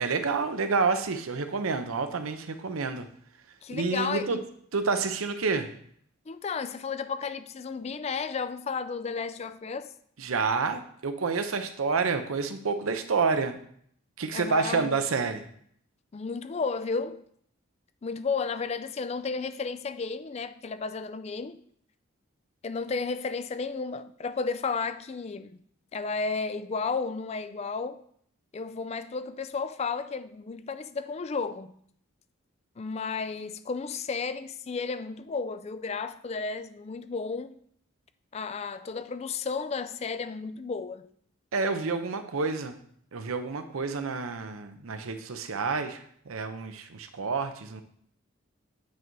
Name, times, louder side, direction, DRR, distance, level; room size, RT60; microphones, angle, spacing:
voice 1, 0.0-3.1 3.7-4.4 4.7-5.7 10.2-13.6 14.2-15.4 41.5-42.8 43.1-47.8, right 4 dB, 90° right, 0.7 m, -29 dB
voice 2, 3.6-4.4 6.3-9.9 14.3-15.0 16.1-17.2 18.0-21.6 22.6-25.6 25.9-28.0 28.5-31.8 32.8-37.6 38.3-41.1, left 4 dB, 30° left, 0.3 m, -33 dB
8.5 x 4.6 x 4.0 m
head